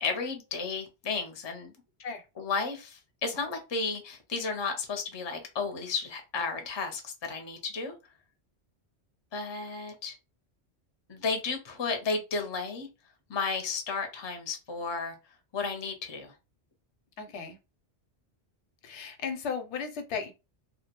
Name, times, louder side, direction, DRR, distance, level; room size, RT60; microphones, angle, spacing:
voice 1, 0.0-1.7 2.4-8.0 9.3-10.1 11.1-12.9 13.3-15.2 15.5-16.3, left 4 dB, 35° left, 0.5 m, -33 dB
voice 2, 17.2-17.6 18.8-20.3, left 6 dB, 90° left, 0.9 m, -35 dB
2.3 x 2.1 x 2.9 m
omnidirectional pair, 1.1 m